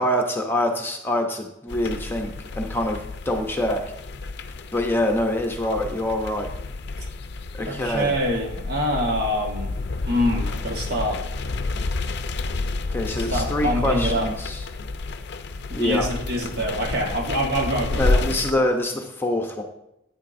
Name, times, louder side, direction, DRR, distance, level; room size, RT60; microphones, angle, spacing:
voice 1, 0.0-3.0 3.2-3.8 4.7-6.5 7.5-8.1 12.9-14.6 15.7-16.1 18.0-19.6, left 1 dB, 10° left, 2 dB, 0.8 m, -25 dB
sound 1, 1.7-18.5, left 3 dB, 55° left, 0.5 m, -30 dB
voice 2, 7.7-9.7 10.1-11.2 13.3-14.3 15.7-18.3, equal, 55° right, 1 dB, 1.6 m, -25 dB
10.5 x 9.2 x 2.7 m, 0.85 s
head